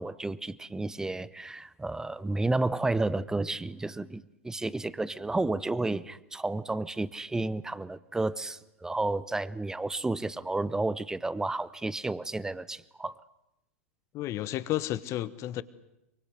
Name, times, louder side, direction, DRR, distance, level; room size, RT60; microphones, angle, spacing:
voice 1, 0.0-13.2, right 2 dB, 5° right, 0.9 m, -31 dB
voice 2, 14.1-15.6, left 14 dB, 35° left, 1.3 m, -32 dB
24.0 x 23.5 x 8.0 m
hypercardioid pair, 100°, 8 cm